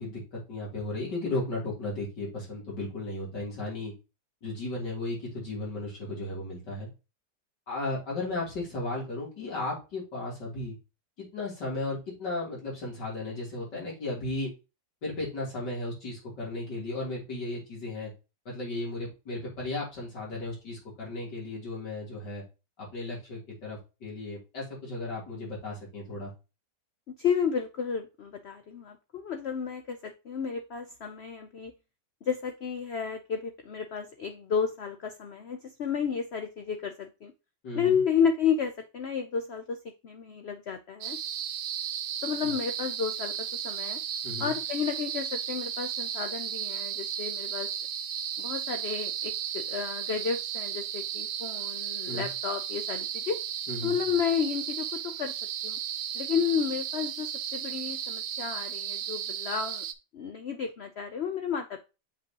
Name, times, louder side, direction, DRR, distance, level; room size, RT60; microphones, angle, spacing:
voice 1, 0.0-3.9 4.4-6.9 7.7-10.8 11.2-14.5 15.0-18.1 18.5-22.4 22.8-26.3 37.6-38.0 42.4-42.6 44.2-44.5 52.1-52.3 53.7-54.0, left 2 dB, 70° left, -5 dB, 3.8 m, -35 dB
voice 2, 27.1-31.7 32.2-37.3 37.8-41.2 42.2-44.0 44.4-47.7 48.4-53.4 53.8-55.3 55.6-55.8 56.1-59.8 60.1-61.8, left 7 dB, 90° left, 7 dB, 0.5 m, -32 dB
sound 1, 41.0-59.9, right 9 dB, 90° right, 1.3 m, -34 dB
6.7 x 5.4 x 2.9 m, 0.29 s
omnidirectional pair, 1.9 m